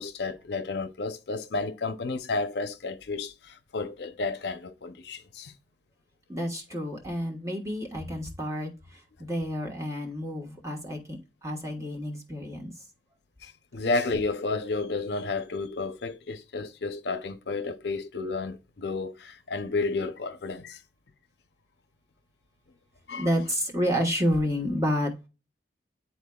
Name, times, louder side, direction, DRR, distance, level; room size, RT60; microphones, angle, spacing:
voice 1, 0.0-5.5 13.4-20.8 23.1-23.3, left 3 dB, 65° left, 0.6 m, -32 dB
voice 2, 6.3-12.9 23.2-25.1, equal, 15° right, 1.3 m, -30 dB
10.0 x 4.2 x 2.3 m
head